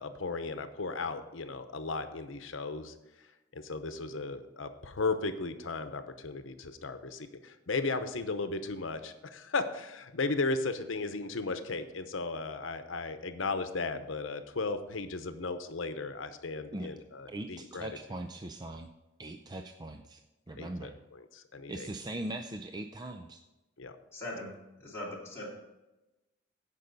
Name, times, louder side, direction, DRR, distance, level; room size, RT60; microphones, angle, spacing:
voice 1, 0.0-2.9 3.5-17.9 20.6-21.9 23.8-23.9, left 3 dB, 80° left, 9 dB, 0.9 m, -35 dB
voice 2, 17.3-18.9 19.2-20.2 20.5-21.0 21.7-23.4, right 1 dB, 20° right, 6 dB, 0.4 m, -40 dB
voice 3, 24.1-24.5 24.8-25.5, left 1 dB, 15° left, -6 dB, 2.7 m, -40 dB
16.0 x 5.4 x 4.0 m, 1.0 s
head